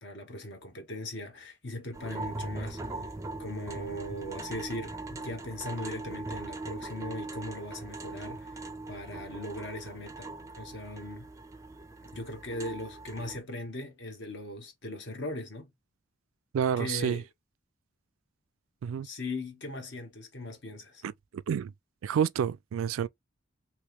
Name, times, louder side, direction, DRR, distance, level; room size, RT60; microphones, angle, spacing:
voice 1, 0.0-3.1 3.4-10.3 10.6-11.3 12.1-15.7 16.8-17.2 19.0-21.0, left 1 dB, 60° left, 1.0 m, -39 dB
sound 1, 1.9-13.4, right 2 dB, 15° right, 0.4 m, -40 dB
voice 2, 16.5-17.2 18.8-19.1 21.0-21.7 22.0-23.1, right 8 dB, 85° right, 0.3 m, -29 dB
3.1 x 2.9 x 3.3 m
head